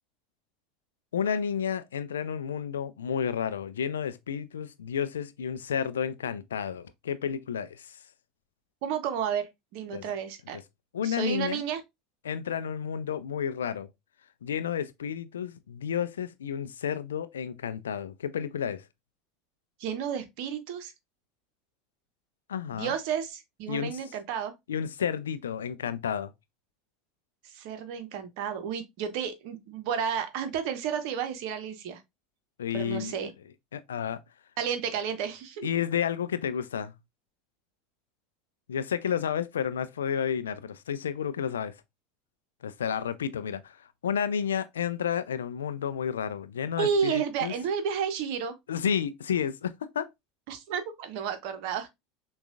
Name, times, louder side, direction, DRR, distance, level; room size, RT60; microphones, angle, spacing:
voice 1, 1.1-8.0 9.9-10.0 10.5-10.6 10.9-11.6 12.2-13.9 14.4-18.8 22.5-22.9 23.7-24.0 24.7-26.3 32.6-33.1 33.7-34.2 35.6-36.9 38.7-41.7 42.6-43.8 44.0-47.5 48.7-50.1, left 8 dB, 75° left, 0.4 m, -31 dB
voice 2, 8.8-10.6 11.0-11.8 19.8-20.9 22.7-24.5 27.5-32.0 32.7-33.3 34.6-35.7 46.8-48.6 50.5-51.9, right 7 dB, 55° right, 0.8 m, -31 dB
6.1 x 2.3 x 2.4 m
figure-of-eight pair, 75°, 0 cm